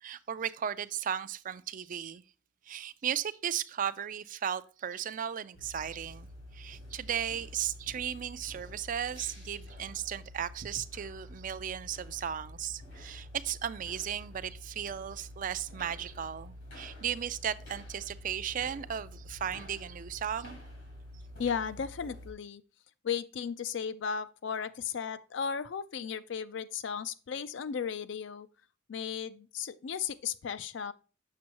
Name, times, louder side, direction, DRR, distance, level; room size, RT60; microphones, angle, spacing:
voice 1, 0.0-2.2 2.7-6.3 6.5-20.6, right 9 dB, 45° right, 0.4 m, -36 dB
sound 1, 5.5-22.3, left 1 dB, 85° left, 3.5 m, -48 dB
voice 2, 21.4-22.6 23.0-28.5 28.9-30.9, left 7 dB, 65° left, 0.4 m, -35 dB
7.5 x 6.2 x 2.9 m
head